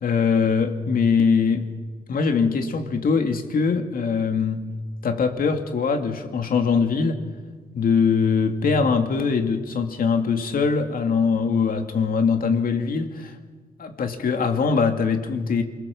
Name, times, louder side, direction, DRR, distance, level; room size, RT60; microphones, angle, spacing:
voice 1, 0.0-1.7 2.1-4.6 5.0-7.2 7.7-13.4 13.8-15.6, left 5 dB, 65° left, 5 dB, 2.4 m, -22 dB
28.0 x 20.5 x 7.2 m, 1.4 s
cardioid pair, 110°, 16 cm